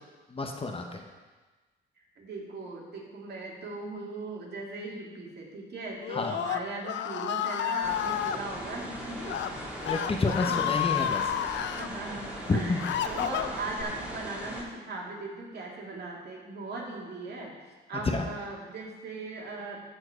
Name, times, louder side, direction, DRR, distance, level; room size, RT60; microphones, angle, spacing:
voice 1, 0.3-1.0 6.1-6.3 9.8-11.3 12.5-12.8 18.1-18.2, left 3 dB, 30° left, 3 dB, 1.0 m, -29 dB
voice 2, 2.0-9.6 10.5-10.6 11.4-17.6 17.9-19.8, right 3 dB, 55° right, -2 dB, 2.5 m, -39 dB
Screaming, 6.0-8.4 9.2-9.5 9.8-11.9 12.4-13.8, left 10 dB, 70° left, 0.5 m, -31 dB
sound 1, 7.8-14.6, equal, 5° right, 2.5 m, -39 dB
13.5 x 4.6 x 5.0 m, 1.3 s
cardioid pair, 90°, 20 cm